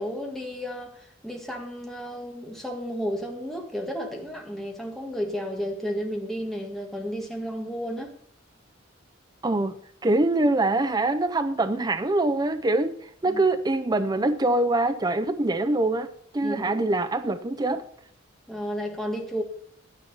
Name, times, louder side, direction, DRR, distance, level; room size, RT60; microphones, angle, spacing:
voice 1, 0.0-8.1 13.3-13.4 16.4-16.8 18.5-19.4, equal, ahead, 1.8 m, -32 dB
voice 2, 9.4-9.7 10.0-17.9, right 2 dB, 20° right, 0.5 m, -24 dB
11.0 x 9.8 x 5.5 m
head